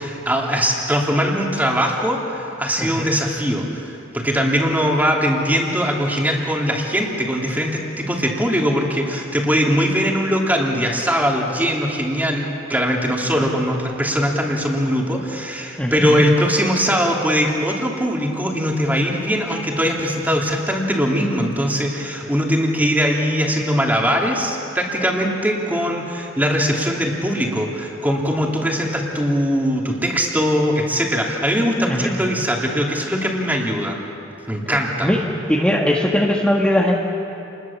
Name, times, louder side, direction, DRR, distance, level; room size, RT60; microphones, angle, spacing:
voice 1, 0.0-34.0 34.5-35.1, equal, 10° right, -1 dB, 3.0 m, -21 dB
voice 2, 2.8-3.1 15.8-16.1 31.9-32.1 35.0-35.2 35.5-36.9, left 1 dB, 5° left, -2 dB, 1.5 m, -19 dB
29.5 x 21.0 x 7.3 m, 2.8 s
head